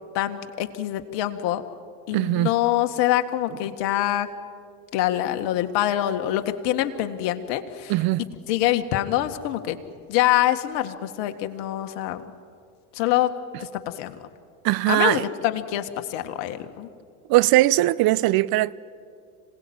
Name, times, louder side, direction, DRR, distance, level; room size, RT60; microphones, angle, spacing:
voice 1, 0.1-1.6 2.1-4.3 4.9-7.9 8.5-9.8 10.1-12.2 12.9-13.3 13.6-14.2 14.9-16.9, left 13 dB, 60° left, 1.9 m, -25 dB
voice 2, 2.1-2.5 7.9-8.2 14.6-15.2 17.3-18.7, right 17 dB, 50° right, 0.8 m, -20 dB
26.0 x 18.5 x 8.9 m
hypercardioid pair, 80°, 48 cm